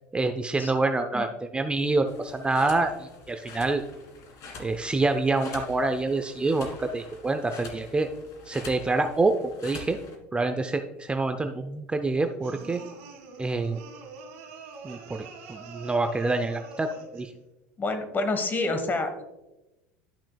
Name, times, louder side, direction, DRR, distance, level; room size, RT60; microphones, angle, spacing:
voice 1, 0.1-3.8 4.6-8.1 8.5-9.4 9.6-10.0 10.3-12.8 13.4-13.8 14.8-17.3, right 3 dB, 15° right, 7 dB, 0.5 m, -26 dB
sound 1, 2.1-10.2, left 3 dB, 50° left, 1.9 m, -45 dB
sound 2, 12.4-17.3, right 4 dB, 70° right, 1.3 m, -45 dB
voice 2, 17.8-19.3, left 2 dB, 25° left, 7 dB, 1.3 m, -28 dB
12.0 x 5.8 x 2.3 m, 1.0 s
hypercardioid pair, 80°, 7 cm